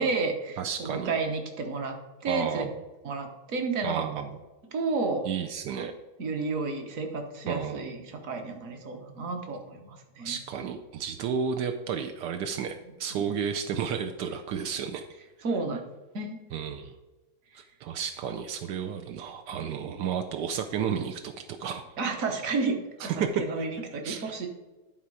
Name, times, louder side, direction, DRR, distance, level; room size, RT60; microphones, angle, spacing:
voice 1, 0.0-2.6 3.0-4.0 4.7-5.3 6.2-10.4 13.1-13.2 15.4-15.8 16.1-16.4 22.0-24.5, right 3 dB, 45° right, 4 dB, 1.2 m, -31 dB
voice 2, 0.6-1.2 2.3-2.7 3.8-4.4 5.2-5.9 7.5-7.8 10.2-15.0 16.5-17.0 17.5-21.8 23.0-23.3 23.6-23.7 24.0-24.5, right 7 dB, 80° right, 5 dB, 0.9 m, -32 dB
11.5 x 4.3 x 4.8 m, 1.2 s
omnidirectional pair, 2.4 m